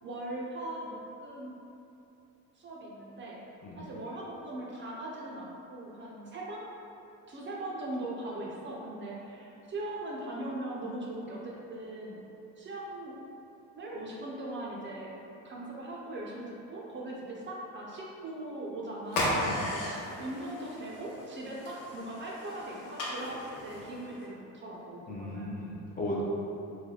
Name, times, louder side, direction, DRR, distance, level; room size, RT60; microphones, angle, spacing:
voice 1, 0.0-1.6 2.6-3.4 3.7-6.6 7.3-12.2 12.6-13.1 13.8-15.1 15.4-19.8 20.2-22.8 23.1-25.5, right 1 dB, 35° right, -4 dB, 0.5 m, -40 dB
sound 1, 19.1-24.3, left 1 dB, 70° left, 0.9 m, -36 dB
voice 2, 25.1-26.2, left 1 dB, 25° left, -5 dB, 0.5 m, -36 dB
3.3 x 2.1 x 3.7 m, 2.8 s
cardioid pair, 125°, 34 cm